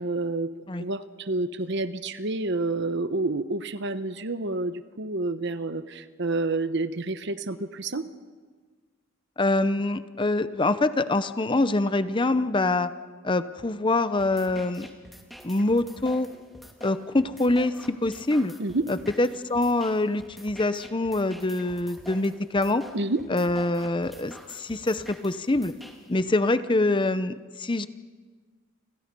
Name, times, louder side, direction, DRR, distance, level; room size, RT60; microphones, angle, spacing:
voice 1, 0.0-0.5 0.8-8.1 18.6-18.9 22.9-23.2, right 2 dB, 55° right, 11 dB, 1.1 m, -29 dB
voice 2, 9.4-12.9 13.2-14.9 15.4-16.3 16.8-18.5 18.9-22.8 23.3-25.7 26.1-27.9, left 2 dB, 25° left, 12 dB, 0.7 m, -25 dB
sound 1, 14.2-26.2, equal, ahead, 2.3 m, -47 dB
29.5 x 26.0 x 5.4 m, 1.5 s
head